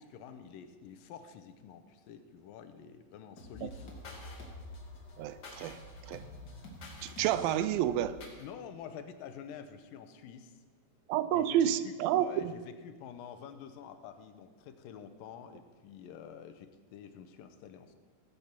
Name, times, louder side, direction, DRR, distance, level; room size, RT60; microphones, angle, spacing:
voice 1, 0.0-4.3 8.4-10.6 11.3-18.0, left 8 dB, 80° left, 9 dB, 2.5 m, -48 dB
sound 1, 3.4-8.4, left 1 dB, 35° left, 2.1 m, -47 dB
voice 2, 5.2-5.8 6.1-6.2 7.0-8.2 11.1-12.5, right 11 dB, 90° right, 14 dB, 2.4 m, -29 dB
17.0 x 8.2 x 6.0 m, 1.5 s
omnidirectional pair, 4.1 m